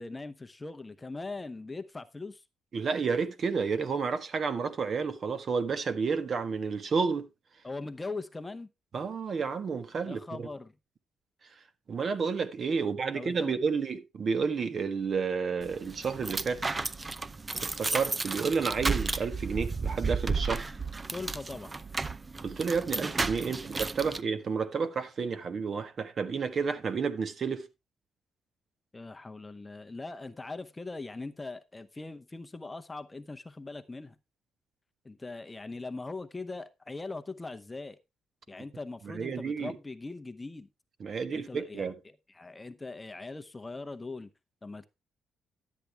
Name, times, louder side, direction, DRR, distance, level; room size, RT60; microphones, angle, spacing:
voice 1, 0.0-2.4 7.6-8.7 10.0-10.7 12.8-13.6 21.1-21.7 23.5-23.7 24.0-24.2 28.9-34.2 35.0-38.0 38.5-40.7 41.3-41.9 42.3-44.3 44.6-44.9, left 3 dB, 20° left, 0.8 m, -41 dB
voice 2, 2.7-7.3 8.9-10.5 11.9-16.6 17.6-20.7 22.4-27.7 39.0-39.7 41.0-41.9, right 5 dB, 50° right, 1.4 m, -31 dB
sound 1, 15.6-24.2, right 4 dB, 25° right, 0.5 m, -33 dB
12.0 x 8.4 x 3.4 m
cardioid pair, 90°, 0 cm